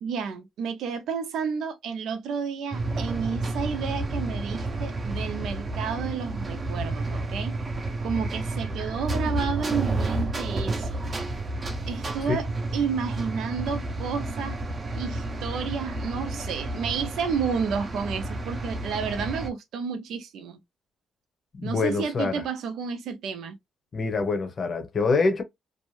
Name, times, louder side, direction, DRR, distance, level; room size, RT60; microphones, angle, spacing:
voice 1, 0.0-7.5 8.0-11.0 11.9-12.5 12.7-14.6 14.9-20.6 21.6-23.6, right 6 dB, 75° right, 0.6 m, -31 dB
sound 1, 2.7-19.5, right 2 dB, 35° right, 0.6 m, -31 dB
voice 2, 21.5-22.4 23.9-25.4, left 4 dB, 45° left, 0.7 m, -25 dB
2.6 x 2.1 x 3.1 m
cardioid pair, 90°, 0 cm